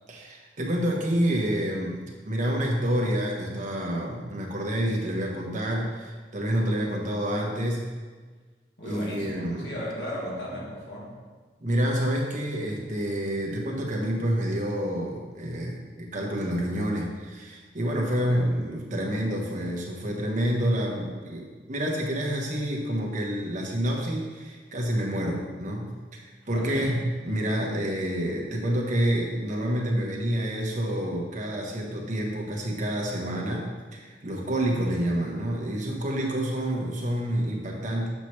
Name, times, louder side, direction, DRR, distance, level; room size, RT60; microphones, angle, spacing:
voice 1, 0.1-7.9 8.8-9.8 11.6-38.1, equal, 45° right, -1 dB, 1.1 m, -28 dB
voice 2, 8.8-11.2 18.1-18.4 26.5-26.9, equal, 70° left, -6 dB, 1.8 m, -36 dB
6.6 x 5.9 x 3.2 m, 1.4 s
head